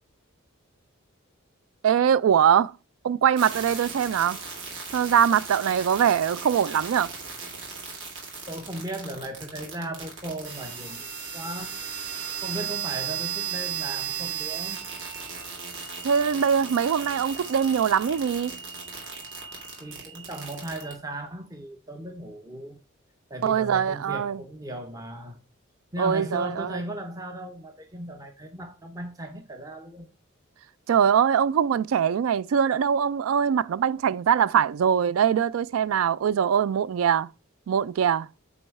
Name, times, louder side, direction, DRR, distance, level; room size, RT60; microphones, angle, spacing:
voice 1, 1.8-2.7 3.0-4.4 4.9-7.1 16.0-18.5 23.4-24.4 26.0-26.8 30.9-37.3 37.7-38.3, right 8 dB, 80° right, 0.3 m, -22 dB
sound 1, 3.4-20.9, right 6 dB, 60° right, 2.2 m, -36 dB
voice 2, 8.5-11.1 11.3-11.8 12.4-14.8 19.8-22.8 23.3-25.4 25.9-30.1, right 1 dB, 15° right, 0.6 m, -36 dB
8.5 x 3.1 x 4.7 m
head